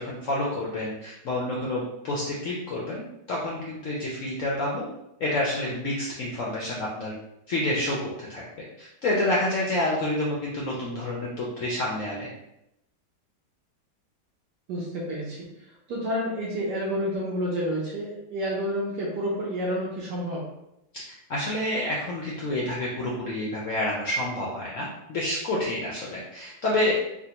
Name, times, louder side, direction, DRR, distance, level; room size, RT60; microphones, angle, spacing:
voice 1, 0.0-3.0 3.3-4.8 5.2-7.1 7.5-8.4 8.8-12.3 20.9-26.9, left 1 dB, 75° left, -4 dB, 0.7 m, -28 dB
voice 2, 14.7-15.5 15.9-20.4, equal, 75° right, -5 dB, 1.2 m, -29 dB
3.6 x 2.1 x 2.8 m, 0.85 s
omnidirectional pair, 1.9 m